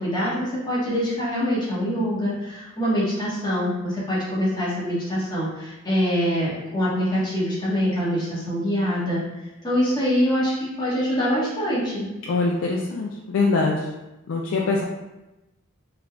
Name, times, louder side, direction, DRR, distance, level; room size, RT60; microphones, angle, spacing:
voice 1, 0.0-9.2 9.6-12.1, equal, 20° left, -8 dB, 1.3 m, -24 dB
voice 2, 12.3-13.8 14.3-14.8, left 3 dB, 80° left, -2 dB, 0.4 m, -23 dB
3.7 x 3.3 x 2.3 m, 0.99 s
head